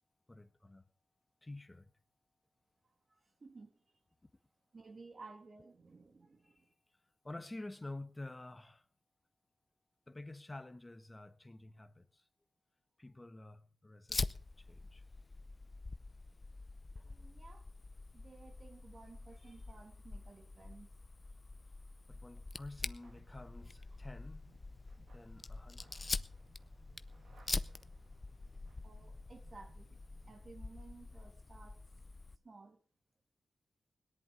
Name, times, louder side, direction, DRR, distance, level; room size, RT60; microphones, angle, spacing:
voice 1, 0.3-0.8 1.4-1.9 6.4-8.9 10.1-12.3 13.0-15.0 22.1-24.5 25.0-25.9, left 2 dB, 20° left, 1.1 m, -50 dB
voice 2, 3.4-3.7 4.7-6.7 17.0-17.6 18.1-20.9 28.8-30.0 30.3-32.0 32.4-32.8, right 3 dB, 50° right, 2.5 m, -56 dB
Fire, 14.1-32.4, left 3 dB, 40° left, 0.7 m, -45 dB
sound 1, 23.0-30.4, right 3 dB, 85° right, 2.4 m, -66 dB
18.0 x 11.0 x 5.2 m
cardioid pair, 60°, 0 cm